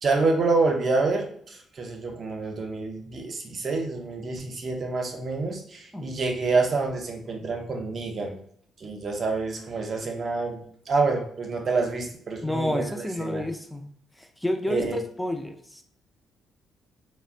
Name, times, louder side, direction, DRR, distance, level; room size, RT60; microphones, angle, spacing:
voice 1, 0.0-8.4 8.8-13.4 14.7-15.0, right 3 dB, 45° right, 2 dB, 0.6 m, -27 dB
voice 2, 12.4-13.8 14.2-15.8, left 1 dB, 5° left, 5 dB, 0.4 m, -30 dB
3.6 x 2.1 x 2.5 m, 0.64 s
cardioid pair, 90°, 0 cm